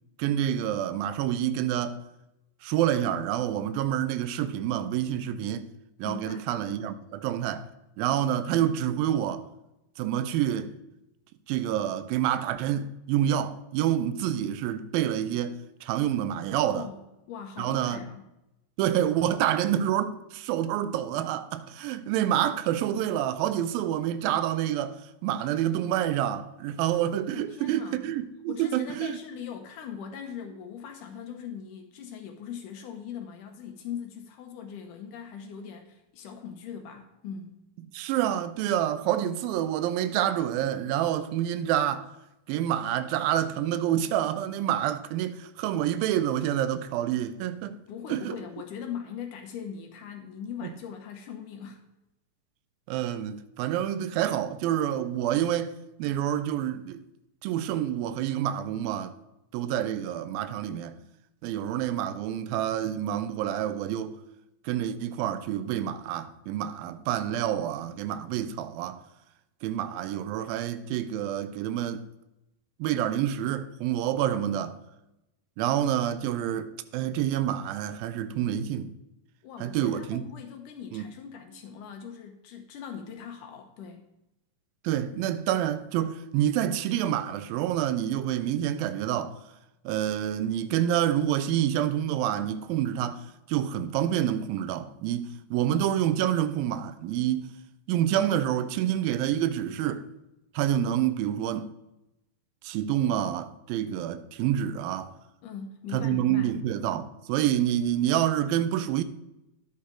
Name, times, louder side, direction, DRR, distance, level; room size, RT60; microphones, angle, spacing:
voice 1, 0.2-2.0 2.6-5.7 6.0-7.7 8.0-9.4 10.0-10.7 11.5-15.6 15.8-16.9 17.6-18.0 18.8-29.2 37.9-42.1 42.5-47.8 48.1-48.4 50.6-50.7 52.9-55.7 56.0-57.0 57.4-59.1 59.5-61.0 61.4-64.1 64.7-69.0 69.6-72.1 72.8-74.8 75.6-78.9 79.6-80.2 80.9-81.0 84.8-89.4 89.9-97.5 97.9-100.1 100.5-101.7 102.6-105.1 105.9-109.0, right 11 dB, 80° right, 2.3 m, -28 dB
voice 2, 6.0-6.5 16.7-17.0 17.3-18.2 21.8-21.9 27.3-28.1 28.5-37.6 47.9-51.8 79.4-84.1 105.4-106.5, left 7 dB, 75° left, 2.1 m, -40 dB
11.0 x 8.1 x 3.7 m
omnidirectional pair, 4.2 m